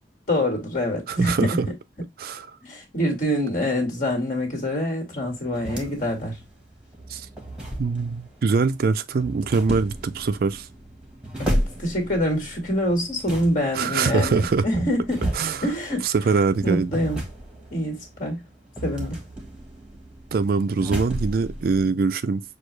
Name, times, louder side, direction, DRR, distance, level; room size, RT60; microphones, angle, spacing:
voice 1, 0.3-1.5 2.6-6.4 11.4-15.3 15.6-16.1 16.6-17.2 17.7-18.4 18.8-19.2, equal, 45° left, 1.9 m, -25 dB
voice 2, 1.1-1.7 2.2-2.6 7.1-7.3 7.8-10.7 13.7-14.6 15.4-15.6 16.0-16.9 20.3-22.4, right 4 dB, 55° right, 0.4 m, -23 dB
sound 1, 5.1-21.8, right 1 dB, 5° right, 1.2 m, -34 dB
6.4 x 2.4 x 3.1 m
head